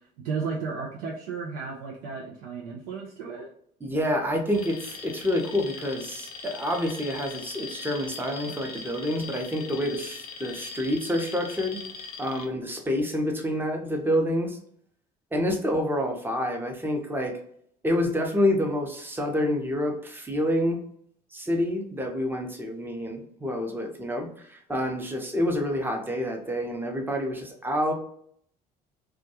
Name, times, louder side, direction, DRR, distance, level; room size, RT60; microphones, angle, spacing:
voice 1, 0.0-3.5, right 5 dB, 80° right, -2 dB, 0.5 m, -34 dB
voice 2, 3.8-11.8 12.2-14.6 15.3-17.4 17.8-20.8 21.3-27.9, left 1 dB, 10° right, 3 dB, 0.7 m, -28 dB
Alarm, 4.5-12.5, left 5 dB, 50° left, 0.5 m, -41 dB
2.3 x 2.1 x 2.8 m, 0.65 s
hypercardioid pair, 65°, 21 cm